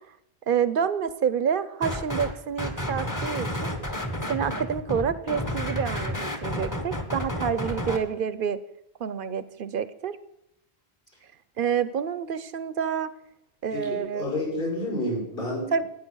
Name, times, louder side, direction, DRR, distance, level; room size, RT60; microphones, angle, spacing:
voice 1, 0.5-3.7 4.3-8.6 9.0-10.2 11.6-13.1 13.6-14.3 15.7-15.8, right 7 dB, 60° right, 15 dB, 0.9 m, -28 dB
sound 1, 1.8-2.3 2.6-8.0, equal, 20° left, 1.2 m, -31 dB
voice 2, 13.7-15.7, left 1 dB, 60° left, -3 dB, 7.0 m, -29 dB
14.0 x 9.4 x 6.3 m, 0.82 s
omnidirectional pair, 1.0 m